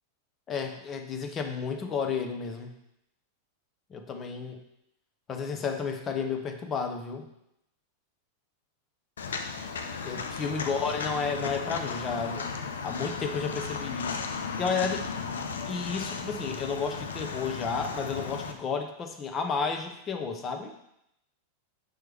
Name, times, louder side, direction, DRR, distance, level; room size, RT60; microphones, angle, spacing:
voice 1, 0.5-2.7 3.9-4.6 5.3-7.3 10.0-12.5 12.8-15.1 15.4-20.7, left 5 dB, 25° left, 5 dB, 0.8 m, -32 dB
Walk footsteps, 9.2-18.5, left 5 dB, 65° left, 0.5 m, -35 dB
6.3 x 4.5 x 3.4 m, 0.81 s
figure-of-eight pair, 90°, 0 cm